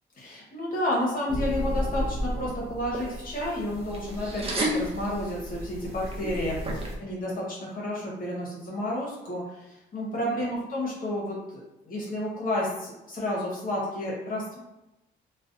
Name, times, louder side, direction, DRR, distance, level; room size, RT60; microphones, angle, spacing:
voice 1, 0.2-11.4 11.8-14.6, left 1 dB, 45° left, -5 dB, 0.8 m, -31 dB
sound 1, 1.3-7.0, equal, 30° right, 0.5 m, -32 dB
2.4 x 2.1 x 2.5 m, 0.94 s
cardioid pair, 90°, 20 cm